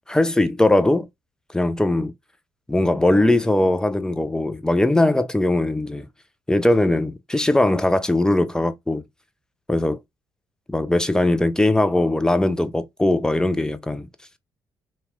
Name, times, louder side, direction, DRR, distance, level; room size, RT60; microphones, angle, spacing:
voice 1, 0.1-1.1 1.5-2.1 2.7-6.1 6.5-9.0 9.7-10.0 10.7-14.1, left 1 dB, 5° left, 0.4 m, -20 dB
2.9 x 2.8 x 2.4 m
figure-of-eight pair, 45°, 11 cm